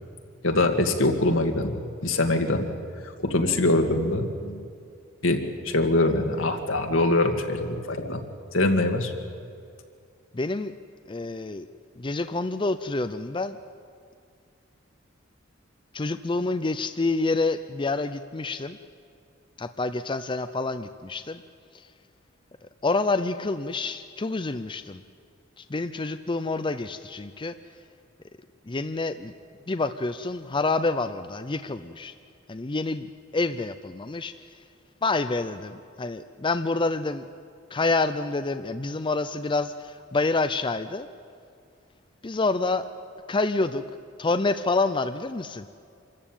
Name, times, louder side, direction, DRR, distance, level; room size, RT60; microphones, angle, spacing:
voice 1, 0.4-2.7 3.2-4.7 5.2-8.2 8.5-9.1, left 2 dB, 80° left, 4 dB, 2.1 m, -23 dB
voice 2, 10.3-10.7 11.1-11.7 12.0-13.6 15.9-18.8 19.6-21.4 22.8-25.0 25.6-27.5 28.7-29.3 29.7-32.1 32.5-33.1 33.3-34.3 35.0-37.2 37.7-41.1 42.2-42.9 43.3-43.8 44.2-45.7, left 3 dB, 25° left, 9 dB, 0.5 m, -27 dB
26.0 x 14.0 x 8.9 m, 2.4 s
head